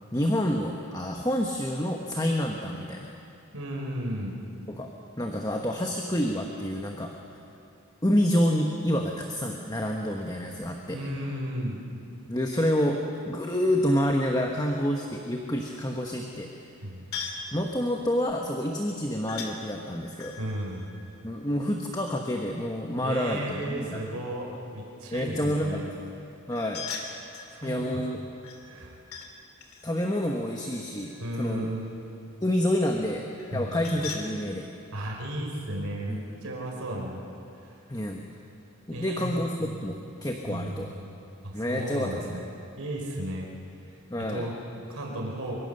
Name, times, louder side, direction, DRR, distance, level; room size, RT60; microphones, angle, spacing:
voice 1, 0.1-3.1 4.7-4.9 5.2-7.1 8.0-11.0 12.2-13.0 13.2-16.5 17.5-20.4 21.2-24.0 25.1-25.8 26.5-26.8 27.6-28.2 29.8-31.7 32.4-33.2 33.5-34.6 36.1-36.2 37.9-38.2 38.9-40.9 41.5-42.4 44.1-44.4, equal, 15° left, 1 dB, 1.3 m, -28 dB
voice 2, 3.5-4.3 10.9-11.8 16.8-17.1 20.4-20.9 23.0-25.9 27.5-28.0 28.6-29.0 31.2-32.1 33.5-33.8 34.9-37.3 37.6-37.7 38.9-39.3 39.6-39.8 40.4-41.1 41.4-42.5 42.8-43.5 44.3-45.6, right 1 dB, 90° right, 0 dB, 4.2 m, -34 dB
sound 1, 17.1-17.5 19.3-19.5 20.2-22.0 26.5-27.5 28.4-29.3 29.6-31.5 33.4-34.3, left 6 dB, 85° left, 2.9 m, -40 dB
24.0 x 23.5 x 6.7 m, 2.8 s
head